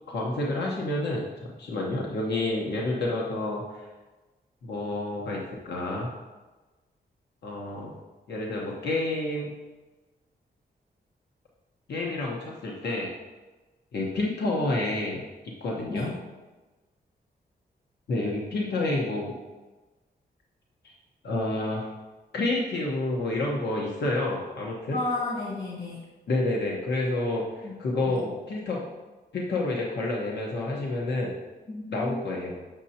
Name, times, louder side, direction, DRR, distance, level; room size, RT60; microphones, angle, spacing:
voice 1, 0.1-1.3 1.6-3.9 4.6-6.1 7.4-7.9 8.3-9.5 11.9-13.1 13.9-15.2 15.6-16.1 18.1-19.3 20.8-20.9 21.2-21.9 22.3-25.0 26.3-28.8 29.3-31.3 31.9-32.5, left 2 dB, 85° left, -2 dB, 1.1 m, -29 dB
voice 2, 24.9-26.0 27.6-27.7 28.1-28.2 31.7-32.2, left 2 dB, 65° left, -6 dB, 1.9 m, -32 dB
7.3 x 6.3 x 2.8 m, 1.2 s
wide cardioid pair, 125°, 17 cm